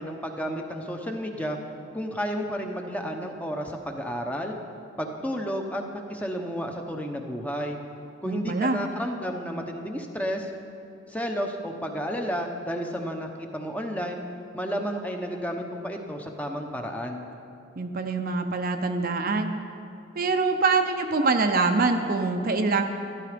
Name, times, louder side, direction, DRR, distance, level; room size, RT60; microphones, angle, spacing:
voice 1, 0.0-1.6 1.9-4.6 5.0-5.8 6.1-7.8 8.2-10.5 11.1-14.2 14.5-17.3, equal, 10° left, 3 dB, 0.9 m, -31 dB
voice 2, 8.3-8.8 17.8-19.5 20.2-22.8, right 3 dB, 50° right, 5 dB, 0.7 m, -24 dB
13.0 x 11.5 x 5.1 m, 2.6 s
head